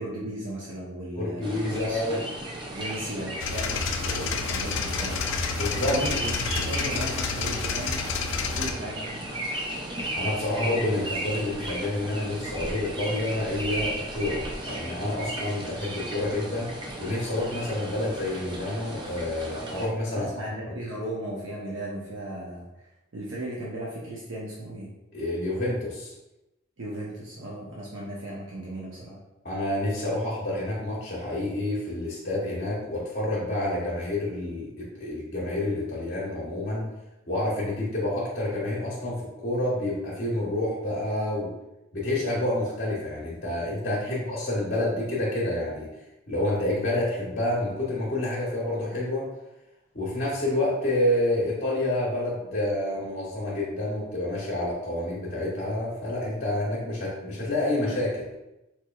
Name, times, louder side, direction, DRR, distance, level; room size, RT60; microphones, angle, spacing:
voice 1, 0.0-2.0 2.7-5.3 5.8-8.1 8.5-9.2 20.1-22.6 23.1-24.9 26.8-29.2 43.8-44.2, right 1 dB, 65° right, -6 dB, 0.7 m, -36 dB
voice 2, 1.2-2.2 5.6-6.0 10.1-16.7 17.0-20.3 25.1-26.1 29.4-36.9 37.3-41.5 41.9-45.9 46.3-49.3 49.9-58.3, left 1 dB, 45° left, -6 dB, 0.8 m, -28 dB
sound 1, 1.4-19.9, right 1 dB, 25° right, 0.4 m, -35 dB
sound 2, 3.4-8.7, left 5 dB, 65° left, 0.4 m, -29 dB
4.4 x 2.9 x 2.3 m, 0.96 s
head